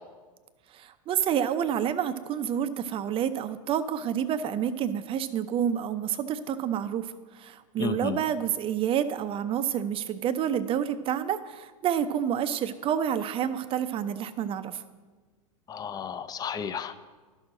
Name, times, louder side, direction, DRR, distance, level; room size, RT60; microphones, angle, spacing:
voice 1, 0.7-14.8, right 9 dB, 30° right, 11 dB, 0.5 m, -29 dB
voice 2, 7.8-8.2 15.7-17.1, left 6 dB, 20° left, 11 dB, 0.5 m, -33 dB
12.0 x 6.3 x 3.7 m, 1.3 s
hypercardioid pair, 100°, 19 cm